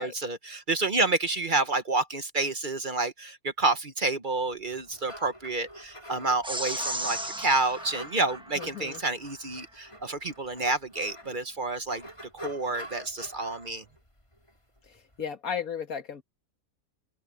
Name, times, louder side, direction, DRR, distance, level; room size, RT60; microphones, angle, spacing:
voice 1, 0.0-12.1 12.3-13.8, right 3 dB, 40° right, 1.1 m, -29 dB
sound 1, 4.7-15.2, equal, 20° left, 4.6 m, -45 dB
sound 2, 6.4-9.1, right 1 dB, 5° right, 1.2 m, -35 dB
voice 2, 8.6-9.0 14.9-16.2, left 7 dB, 80° left, 2.2 m, -35 dB
open air
omnidirectional pair, 1.5 m